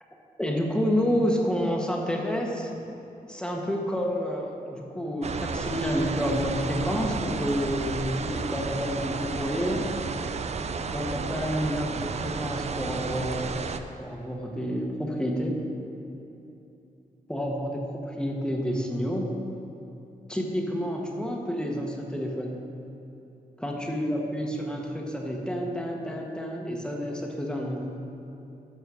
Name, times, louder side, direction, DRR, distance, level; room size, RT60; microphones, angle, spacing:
voice 1, 0.4-2.7 3.3-9.9 10.9-13.7 14.0-15.6 17.3-19.3 20.3-22.6 23.6-27.8, equal, 5° left, -1 dB, 1.5 m, -29 dB
sound 1, 5.2-13.8, right 5 dB, 45° right, 0.5 m, -32 dB
12.5 x 4.5 x 6.3 m, 2.9 s
cardioid pair, 80°, 16 cm